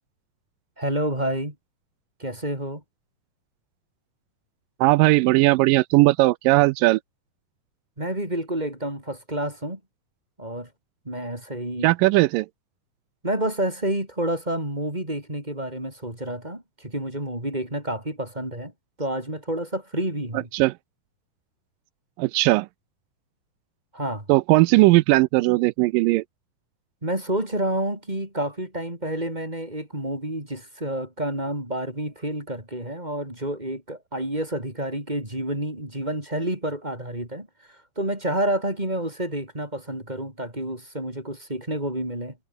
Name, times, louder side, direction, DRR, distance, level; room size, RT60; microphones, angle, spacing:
voice 1, 0.8-1.5 2.2-2.8 8.0-9.8 10.4-10.7 11.0-11.9 13.2-18.7 19.0-20.5 23.9-24.3 27.0-42.4, right 1 dB, 10° right, 5.9 m, -29 dB
voice 2, 4.8-7.0 11.8-12.5 20.5-20.7 22.2-22.7 24.3-26.2, right 20 dB, 80° right, 2.1 m, -18 dB
omnidirectional pair, 4.2 m